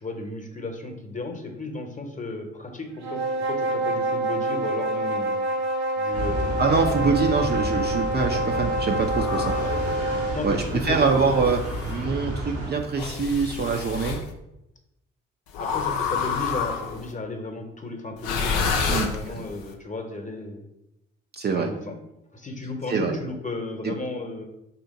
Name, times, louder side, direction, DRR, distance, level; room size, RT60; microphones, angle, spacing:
voice 1, 0.0-5.4 6.0-7.1 9.4-11.1 15.6-20.6 21.5-21.9 22.3-24.5, left 2 dB, 25° left, 4 dB, 0.9 m, -34 dB
sound 1, 3.0-10.4, right 1 dB, 60° right, 0.8 m, -27 dB
sound 2, 6.1-12.7, equal, 85° right, 1.4 m, -31 dB
voice 2, 6.6-9.5 10.4-14.2 18.9-19.4 21.3-21.7 22.9-23.1 23.8-23.9, right 5 dB, 35° right, 3 dB, 0.5 m, -24 dB
sound 3, 9.1-9.8 10.8-12.0 13.0-14.2 15.5-17.1 18.2-19.6, left 5 dB, 80° left, 0.5 m, -29 dB
3.4 x 2.8 x 4.0 m, 0.87 s
hypercardioid pair, 45°, 31 cm